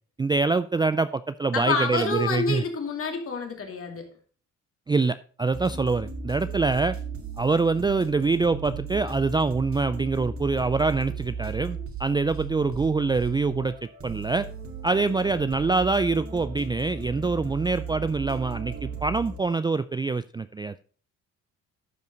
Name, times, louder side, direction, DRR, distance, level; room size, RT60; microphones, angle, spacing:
voice 1, 0.2-2.6 4.9-7.0 7.4-13.7 14.0-14.5 14.8-20.7, right 3 dB, 15° right, 13 dB, 0.3 m, -25 dB
voice 2, 1.5-4.1 6.4-6.6, left 4 dB, 45° left, 3 dB, 2.5 m, -28 dB
sound 1, 5.5-19.4, right 4 dB, 45° right, 2.3 m, -36 dB
12.0 x 5.4 x 3.8 m, 0.40 s
cardioid pair, 90°, 30 cm